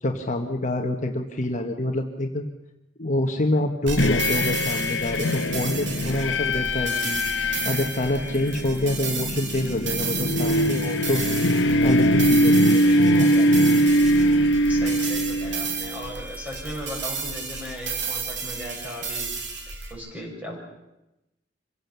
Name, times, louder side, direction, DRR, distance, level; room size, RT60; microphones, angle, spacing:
voice 1, 0.0-2.4 3.0-11.2 11.8-12.8, left 1 dB, 40° left, 4 dB, 1.4 m, -27 dB
sound 1, 3.9-19.9, right 4 dB, 65° right, 2.9 m, -33 dB
sound 2, 4.0-16.0, equal, 70° left, 1.2 m, -22 dB
voice 2, 12.7-13.6 14.7-19.3 19.9-20.6, equal, 10° right, -1 dB, 6.4 m, -37 dB
26.0 x 16.5 x 6.9 m, 0.95 s
head